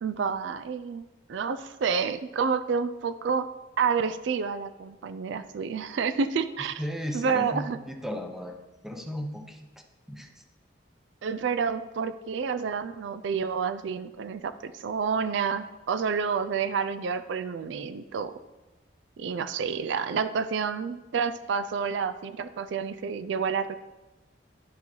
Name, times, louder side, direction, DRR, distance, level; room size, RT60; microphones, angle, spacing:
voice 1, 0.0-1.0 1.3-3.5 3.8-6.8 7.1-7.8 11.2-18.3 19.2-23.8, right 6 dB, 65° right, 11 dB, 0.4 m, -29 dB
voice 2, 6.8-8.6 8.8-9.6 10.1-10.3, equal, ahead, 3 dB, 0.7 m, -35 dB
12.0 x 5.5 x 3.0 m, 1.1 s
head